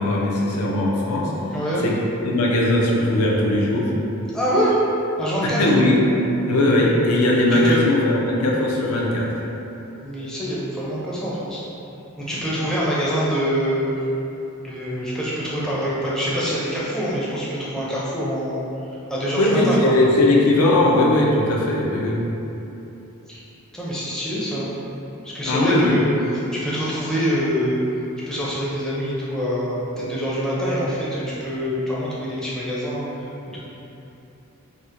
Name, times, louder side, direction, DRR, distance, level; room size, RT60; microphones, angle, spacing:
voice 1, 0.0-1.3 1.8-1.9 2.2-3.9 5.6-6.0 6.5-9.3 19.4-22.2 25.4-26.0, left 1 dB, 85° left, -2 dB, 0.5 m, -19 dB
voice 2, 1.5-1.8 4.3-4.8 5.2-5.6 7.5-7.8 10.0-11.6 12.2-13.9 14.6-18.6 19.1-20.0 23.3-23.4 23.7-24.7 25.2-26.0 26.5-27.8 28.3-33.1 33.5-33.6, equal, 5° left, -8 dB, 0.5 m, -25 dB
4.2 x 2.1 x 2.5 m, 3.0 s
head